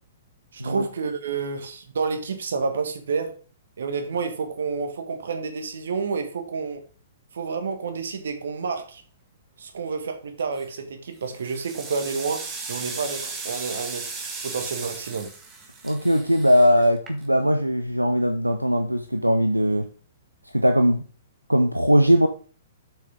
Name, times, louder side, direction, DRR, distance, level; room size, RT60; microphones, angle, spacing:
voice 1, 0.5-3.4 3.8-6.8 7.3-9.0 9.6-14.1 14.4-15.3, right 5 dB, 60° right, 1.6 m, -29 dB
sound 1, 10.4-10.8 11.3-17.5, right 4 dB, 15° right, 1.7 m, -36 dB
voice 2, 15.8-19.9 20.5-21.0 21.5-22.3, equal, 90° right, 0.6 m, -20 dB
7.1 x 6.3 x 3.7 m
figure-of-eight pair, 115°, 0 cm